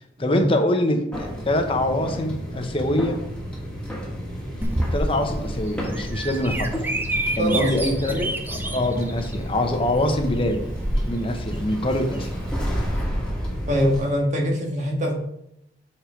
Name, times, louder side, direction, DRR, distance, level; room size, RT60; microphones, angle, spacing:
voice 1, 0.2-3.2 4.9-6.7 7.4-8.1 8.5-10.7 11.1-12.3, left 1 dB, 30° left, 5 dB, 0.8 m, -24 dB
sound 1, 1.1-14.0, equal, 5° left, 1.7 m, -32 dB
Bird vocalization bird call bird song, 4.6-13.1, right 1 dB, 10° right, 0.6 m, -29 dB
voice 2, 7.4-8.2 13.7-15.1, equal, 40° right, 0 dB, 1.6 m, -24 dB
7.1 x 4.3 x 4.5 m, 0.79 s
head